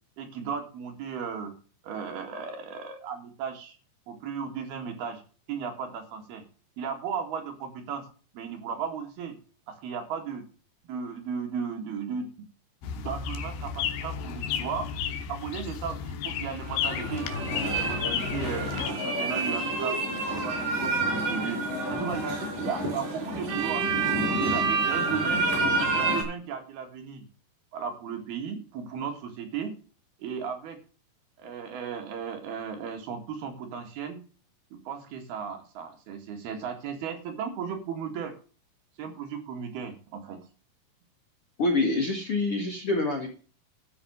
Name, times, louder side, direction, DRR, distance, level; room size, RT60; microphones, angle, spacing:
voice 1, 0.2-1.5 1.8-3.8 4.1-5.2 5.5-6.4 6.8-8.1 8.3-9.4 9.7-10.4 10.9-12.3 12.8-14.9 15.3-17.3 17.6-18.7 19.0-21.6 21.9-25.5 25.9-27.3 27.7-29.7 30.2-30.8 31.4-34.2 34.7-38.4 39.0-40.4, right 6 dB, 70° right, 4 dB, 3.8 m, -35 dB
sound 1, 12.8-18.9, left 7 dB, 80° left, 3.1 m, -33 dB
sound 2, 16.6-26.2, right 3 dB, 55° right, 7.6 m, -28 dB
voice 2, 41.6-43.3, left 2 dB, 50° left, 2 dB, 1.9 m, -26 dB
13.0 x 6.1 x 7.0 m, 0.38 s
omnidirectional pair, 4.8 m